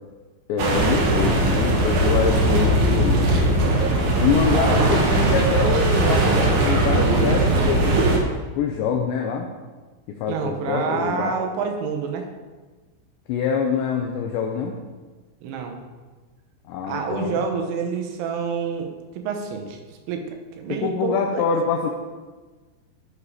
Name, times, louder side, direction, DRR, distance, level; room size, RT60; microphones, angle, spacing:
voice 1, 0.5-3.5 4.2-8.0 8.6-9.5 10.2-11.4 13.3-14.7 16.7-17.3 20.7-21.9, left 6 dB, 75° left, 2 dB, 2.8 m, -25 dB
sound 1, 0.6-8.2, right 2 dB, 65° right, 2.0 m, -19 dB
voice 2, 4.5-4.8 10.3-12.3 15.4-15.8 16.8-21.4, right 6 dB, 80° right, 4 dB, 3.6 m, -28 dB
12.0 x 7.6 x 4.9 m, 1.3 s
omnidirectional pair, 5.7 m